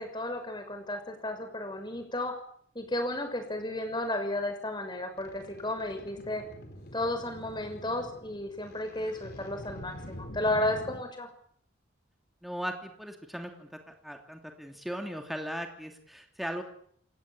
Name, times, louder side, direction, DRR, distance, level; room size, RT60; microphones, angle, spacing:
voice 1, 0.0-2.3 2.7-6.4 6.9-11.3, left 1 dB, 25° left, 6 dB, 6.4 m, -33 dB
sound 1, 5.2-11.0, equal, 55° left, 4.3 m, -46 dB
voice 2, 12.4-16.6, equal, ahead, 3 dB, 2.8 m, -38 dB
28.5 x 17.0 x 8.8 m, 0.63 s
head